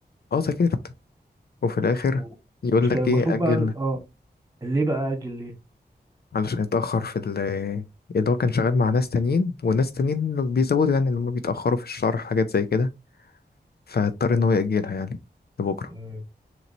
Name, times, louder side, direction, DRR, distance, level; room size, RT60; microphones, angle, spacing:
voice 1, 0.3-0.8 1.6-2.2 2.6-3.7 6.3-7.8 8.1-12.9 13.9-15.2 15.6-15.9, left 4 dB, 65° left, 0.5 m, -23 dB
voice 2, 2.8-4.0 4.6-5.5 15.9-16.2, right 2 dB, 20° right, 1.9 m, -27 dB
3.9 x 3.1 x 4.1 m
wide cardioid pair, 90°, 17 cm